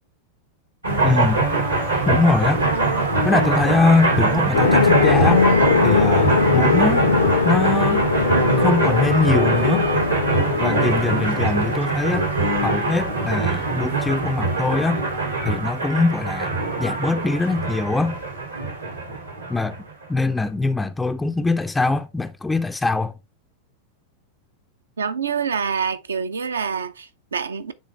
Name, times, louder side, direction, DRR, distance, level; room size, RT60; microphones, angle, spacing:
sound 1, 0.8-20.0, right 3 dB, 85° right, 2.5 m, -22 dB
voice 1, 1.0-1.5 2.1-2.7 3.2-5.5 5.8-7.1 7.4-8.0 8.6-9.9 10.6-12.3 12.6-15.0 15.4-16.5 16.8-18.2 19.5-19.8 20.1-23.1, left 3 dB, 10° left, 0.4 m, -22 dB
sound 2, 4.5-11.9, left 5 dB, 70° left, 0.6 m, -20 dB
voice 2, 25.0-27.7, right 6 dB, 70° right, 0.6 m, -26 dB
9.1 x 3.8 x 3.3 m
figure-of-eight pair, 90°, 0 cm